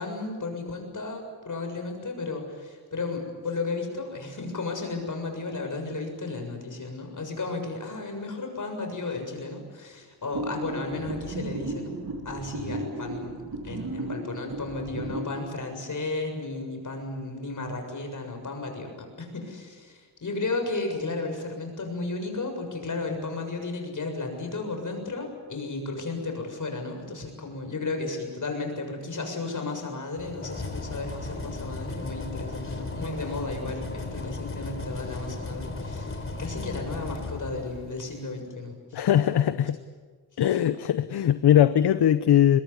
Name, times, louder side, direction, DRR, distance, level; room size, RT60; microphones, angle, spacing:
voice 1, 0.0-11.9 12.3-39.1 39.6-39.7, left 3 dB, 45° left, 4 dB, 7.0 m, -34 dB
sound 1, 10.3-15.4, right 2 dB, 60° right, 2.9 m, -35 dB
sound 2, 30.2-38.1, left 3 dB, 30° left, 4.1 m, -36 dB
voice 2, 38.9-39.8 40.4-42.6, left 10 dB, 70° left, 12 dB, 0.9 m, -20 dB
23.5 x 21.0 x 9.8 m, 1.5 s
wide cardioid pair, 100°, 42 cm